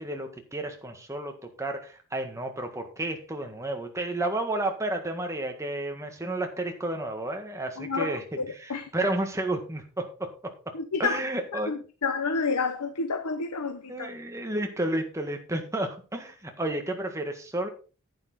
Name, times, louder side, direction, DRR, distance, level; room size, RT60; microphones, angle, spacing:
voice 1, 0.0-10.5 11.0-11.7 13.9-17.7, right 1 dB, 15° right, 1.7 m, -31 dB
voice 2, 7.8-8.9 10.7-11.2 11.7-14.1, left 4 dB, 90° left, 0.9 m, -30 dB
10.5 x 9.0 x 4.0 m
head